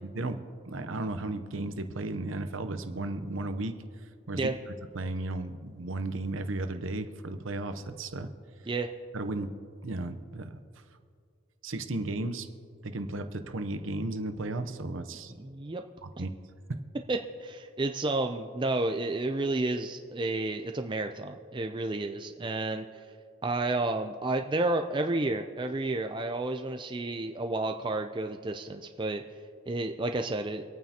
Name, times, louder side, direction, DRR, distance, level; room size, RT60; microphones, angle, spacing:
voice 1, 0.0-0.4 0.7-3.7 4.3-8.3 9.1-9.5 9.8-10.6 11.6-12.5 12.8-15.3 16.0-16.3, right 2 dB, 70° right, 9 dB, 0.8 m, -34 dB
voice 2, 15.3-15.8 16.2-16.3 17.1-23.1 23.4-29.2 29.7-30.6, right 2 dB, 20° right, 5 dB, 0.4 m, -31 dB
25.5 x 9.1 x 2.9 m, 2.2 s
head